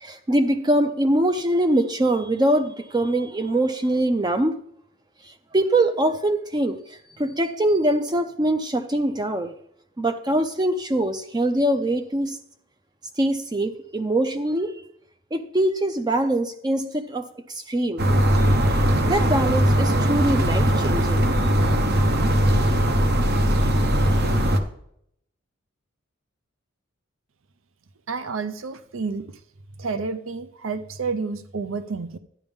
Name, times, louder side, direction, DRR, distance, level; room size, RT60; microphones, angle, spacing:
voice 1, 0.0-4.6 5.2-9.5 10.0-12.4 13.2-14.8 15.3-18.0 19.0-21.2, right 1 dB, 20° right, 8 dB, 0.5 m, -23 dB
sound 1, 18.0-24.6, equal, 50° right, 1.0 m, -20 dB
voice 2, 28.1-29.4 29.8-32.2, right 4 dB, 70° right, 11 dB, 0.6 m, -30 dB
13.0 x 9.9 x 3.6 m, 0.71 s
head